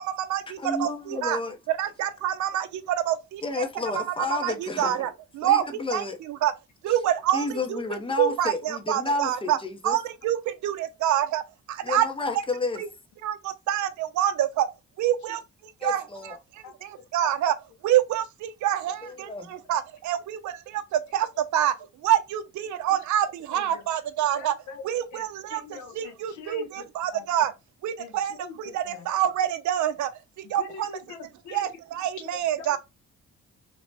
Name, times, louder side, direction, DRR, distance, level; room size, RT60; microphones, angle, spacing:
voice 1, 0.0-1.4 1.7-3.6 3.9-4.0 4.3-6.5 6.8-7.8 8.2-9.6 9.8-10.4 10.6-11.4 11.7-12.1 12.8-12.9 13.2-14.7 15.0-17.5 17.8-19.3 19.7-21.7 22.0-24.5 24.8-25.6 25.9-27.5 27.8-30.1 30.5-30.9 31.5-32.8, right 11 dB, 70° right, 0.5 m, -27 dB
voice 2, 0.6-1.6 3.4-5.1 5.4-6.2 7.3-10.0 11.8-12.8 15.8-16.4 19.0-19.4, left 3 dB, 15° left, 0.6 m, -31 dB
voice 3, 16.6-17.3 21.8-21.9 23.5-23.8 24.3-26.9 27.1-27.3 28.0-29.1 30.4-31.7 32.2-32.8, left 5 dB, 75° left, 0.7 m, -44 dB
3.3 x 2.0 x 2.6 m
cardioid pair, 90°, 30 cm